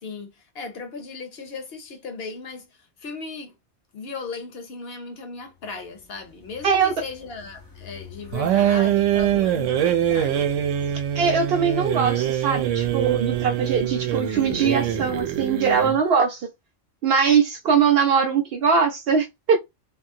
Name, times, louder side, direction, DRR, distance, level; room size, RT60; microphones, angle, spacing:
voice 1, 0.0-3.5 3.9-10.4, left 4 dB, 60° left, 0.8 m, -37 dB
sound 1, 5.5-15.2, left 6 dB, 30° left, 0.4 m, -44 dB
sound 2, 8.3-16.0, right 11 dB, 80° right, 0.9 m, -23 dB
voice 2, 11.2-16.4 17.0-19.6, right 6 dB, 65° right, 0.7 m, -21 dB
2.7 x 2.4 x 2.6 m
omnidirectional pair, 1.3 m